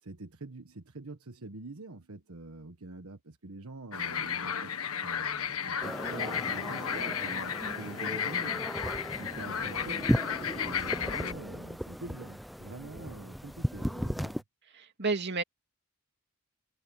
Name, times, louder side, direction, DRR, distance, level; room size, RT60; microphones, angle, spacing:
voice 1, 0.0-4.7 5.0-8.6 9.2-10.0 10.6-14.4, right 2 dB, 85° right, 1.4 m, -45 dB
Frogs in the river, 3.9-11.3, left 7 dB, 85° left, 1.6 m, -34 dB
sound 1, 5.8-14.4, equal, ahead, 0.7 m, -36 dB
voice 2, 14.7-15.4, right 4 dB, 50° right, 2.7 m, -31 dB
head